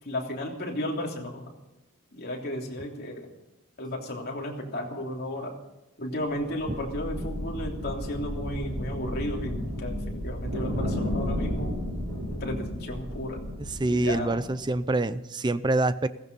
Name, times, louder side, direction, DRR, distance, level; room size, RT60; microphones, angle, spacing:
voice 1, 0.0-1.5 2.1-3.3 3.8-5.5 6.0-11.7 12.3-13.4 13.9-14.4, left 1 dB, 45° left, -1 dB, 3.1 m, -34 dB
sound 1, 6.4-14.7, equal, 85° right, 6.4 m, -33 dB
voice 2, 13.7-16.1, right 2 dB, 20° right, 14 dB, 0.5 m, -26 dB
16.5 x 15.5 x 5.5 m, 0.96 s
head